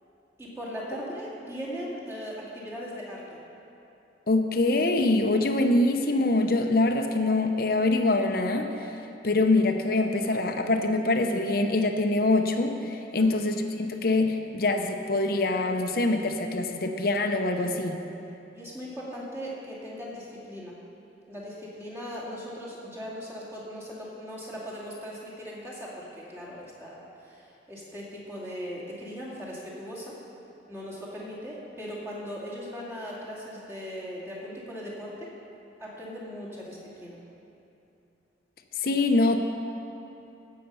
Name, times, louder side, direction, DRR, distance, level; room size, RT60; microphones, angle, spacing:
voice 1, 0.4-3.4 13.2-13.4 18.5-20.7 21.3-30.1 30.7-35.3 35.8-37.2, equal, 15° right, -7 dB, 2.4 m, -39 dB
voice 2, 4.3-8.9 9.2-18.0 38.8-39.4, left 2 dB, 55° left, 5 dB, 0.8 m, -24 dB
16.5 x 6.7 x 5.6 m, 2.8 s
head